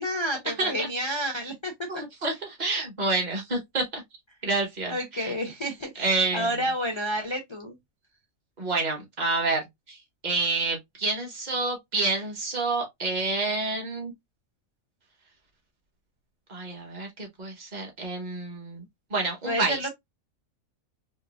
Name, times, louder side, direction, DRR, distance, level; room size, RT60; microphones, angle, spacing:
voice 1, 0.0-2.0 4.9-7.8 19.4-19.9, equal, 45° left, 0.3 m, -30 dB
voice 2, 0.6-0.9 1.9-4.0 4.4-5.3 6.0-6.5 8.6-9.6 9.9-10.0 10.2-14.1 16.5-18.8 19.1-19.8, right 3 dB, 35° right, 1.3 m, -28 dB
4.5 x 2.3 x 2.4 m
omnidirectional pair, 1.4 m